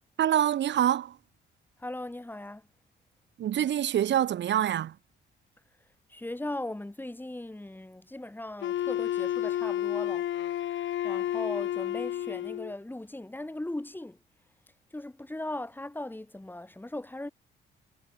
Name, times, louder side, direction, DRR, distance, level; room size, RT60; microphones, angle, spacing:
voice 1, 0.2-1.2 3.4-4.9, right 11 dB, 65° right, 1.4 m, -25 dB
voice 2, 1.8-2.6 6.1-10.3 11.0-14.2 14.9-17.3, left 1 dB, 10° left, 7.0 m, -38 dB
Wind instrument woodwind instrument, 8.6-12.7, left 12 dB, 70° left, 1.8 m, -31 dB
cardioid pair, 90°, 20 cm